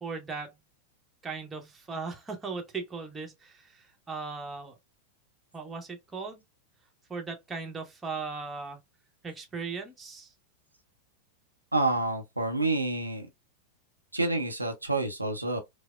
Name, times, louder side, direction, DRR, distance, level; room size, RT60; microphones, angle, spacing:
voice 1, 0.0-0.6 1.2-4.7 5.5-6.4 7.1-8.8 9.2-10.3, right 4 dB, 15° right, 1.0 m, -38 dB
voice 2, 11.7-13.3 14.1-15.6, right 2 dB, 85° right, 0.6 m, -28 dB
4.9 x 2.0 x 2.3 m
figure-of-eight pair, 90°, 0 cm